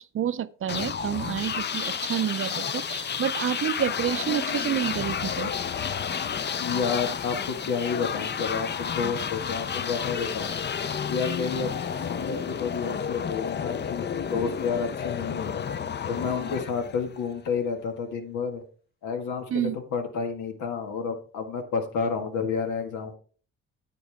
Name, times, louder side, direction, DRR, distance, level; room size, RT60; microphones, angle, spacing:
voice 1, 0.0-5.5 19.5-19.8, right 10 dB, 45° right, 0.5 m, -29 dB
sound 1, 0.7-17.4, left 7 dB, 35° left, 0.6 m, -31 dB
voice 2, 6.6-10.6 11.1-15.6 16.1-18.6 19.0-23.2, left 5 dB, 85° left, 1.9 m, -30 dB
9.4 x 8.5 x 3.5 m
cardioid pair, 90°, 30 cm